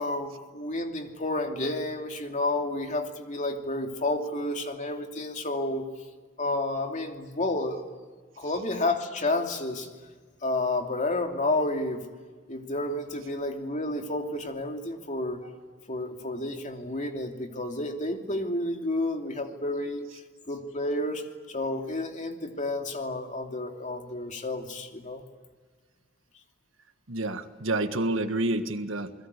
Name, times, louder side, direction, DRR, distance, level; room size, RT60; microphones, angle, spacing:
voice 1, 0.0-5.9 6.4-7.9 8.4-9.9 10.4-12.0 12.5-15.5 15.9-20.1 20.5-25.2, left 2 dB, 35° left, 4 dB, 2.8 m, -30 dB
voice 2, 27.1-29.1, right 2 dB, 70° right, 9 dB, 1.6 m, -28 dB
29.0 x 21.5 x 8.3 m, 1.4 s
head